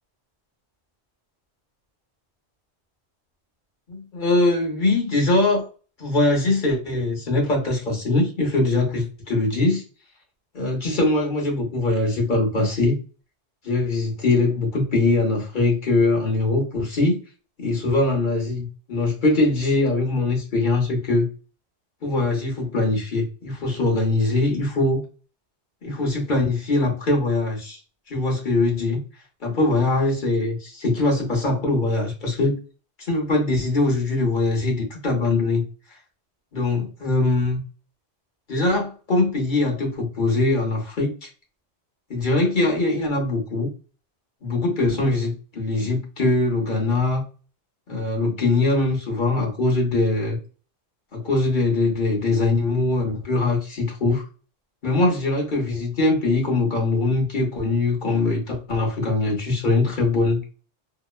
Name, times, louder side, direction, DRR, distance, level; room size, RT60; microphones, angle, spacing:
voice 1, 3.9-5.7 6.0-9.8 10.5-12.9 13.6-17.2 17.6-21.3 22.0-25.0 25.8-27.8 28.1-29.0 29.4-32.6 33.0-35.6 36.5-37.6 38.5-41.3 42.1-43.7 44.4-47.2 47.9-50.4 51.1-54.2 54.8-60.4, left 2 dB, 50° left, 0 dB, 0.9 m, -22 dB
2.9 x 2.0 x 2.3 m, 0.36 s
omnidirectional pair, 1.1 m